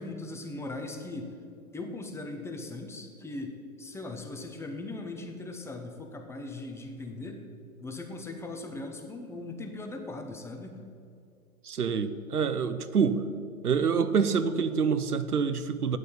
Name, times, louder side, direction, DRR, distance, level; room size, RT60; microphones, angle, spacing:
voice 1, 0.0-1.3 1.7-7.4 7.8-10.7, left 2 dB, 5° left, 3 dB, 0.8 m, -39 dB
voice 2, 11.6-13.2 13.6-16.0, right 6 dB, 85° right, 12 dB, 1.0 m, -26 dB
9.2 x 8.4 x 9.3 m, 2.4 s
hypercardioid pair, 125°, 44 cm